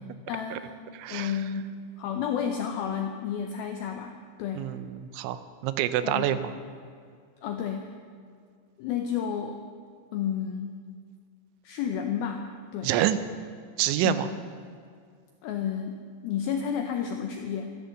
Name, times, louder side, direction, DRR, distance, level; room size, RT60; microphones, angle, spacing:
voice 1, 0.3-0.7 1.1-4.6 6.0-6.4 7.4-8.0 8.8-9.6 10.1-10.8 11.6-12.9 14.0-14.2 15.4-17.8, left 8 dB, 85° left, 5 dB, 2.1 m, -31 dB
voice 2, 0.9-1.3 4.6-6.5 12.8-13.2 13.8-14.3, right 13 dB, 90° right, 12 dB, 3.1 m, -27 dB
14.0 x 13.0 x 7.0 m, 2.1 s
omnidirectional pair, 5.3 m